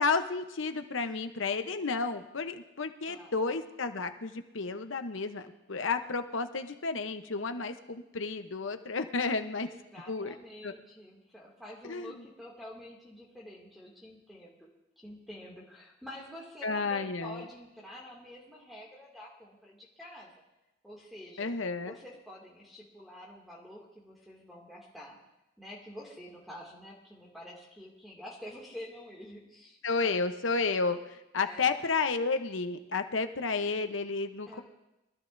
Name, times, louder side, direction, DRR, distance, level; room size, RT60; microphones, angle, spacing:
voice 1, 0.0-9.7 10.1-10.3 10.6-10.7 11.8-12.2 16.6-17.5 21.4-21.9 29.8-31.0 31.3-34.6, left 4 dB, 70° left, 8 dB, 0.9 m, -31 dB
voice 2, 3.1-3.5 9.6-14.7 15.0-20.3 20.8-21.5 21.8-25.2 25.6-30.3 31.4-31.8 34.5-34.6, left 1 dB, ahead, -4 dB, 2.4 m, -48 dB
23.5 x 13.5 x 2.7 m, 0.94 s
head